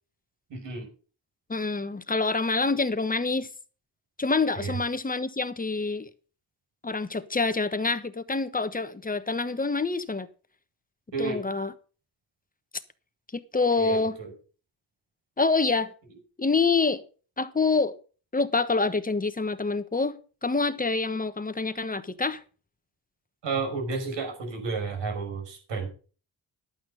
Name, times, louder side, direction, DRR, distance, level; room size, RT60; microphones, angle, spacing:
voice 1, 0.5-0.9 4.5-4.8 11.1-11.4 13.8-14.3 23.4-25.9, right 4 dB, 75° right, 5.7 m, -31 dB
voice 2, 1.5-3.5 4.2-6.1 6.8-10.3 11.2-11.7 13.3-14.2 15.4-15.9 16.4-17.0 17.4-18.0 18.3-22.4, left 4 dB, 20° left, 1.2 m, -26 dB
12.0 x 8.8 x 5.4 m
cardioid pair, 85°, 43 cm